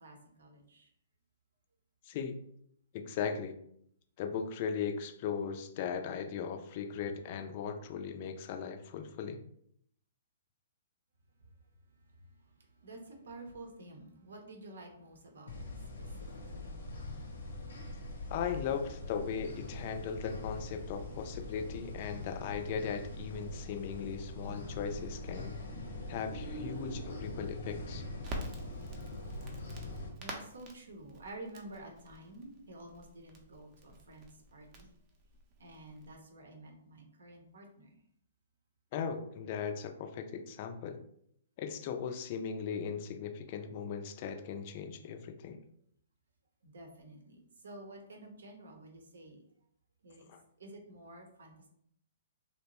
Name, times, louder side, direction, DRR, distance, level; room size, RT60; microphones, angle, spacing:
voice 1, 0.0-0.9 12.8-15.6 16.0-16.1 16.5-16.7 24.4-24.6 30.2-34.8 35.6-37.9 46.6-47.4 47.6-49.4 50.0-50.3 50.6-51.5, right 1 dB, 75° right, 2 dB, 0.7 m, -50 dB
voice 2, 2.0-2.5 2.9-3.6 4.2-9.4 18.3-25.6 26.1-28.0 38.9-41.0 41.6-45.6 50.3-50.4, left 6 dB, 45° left, 6 dB, 0.3 m, -38 dB
sound 1, 15.5-30.1, left 2 dB, 75° left, 0.7 m, -43 dB
Crackle, 28.2-36.1, right 1 dB, 30° right, 0.5 m, -48 dB
2.7 x 2.1 x 2.9 m, 0.70 s
hypercardioid pair, 125°, 0 cm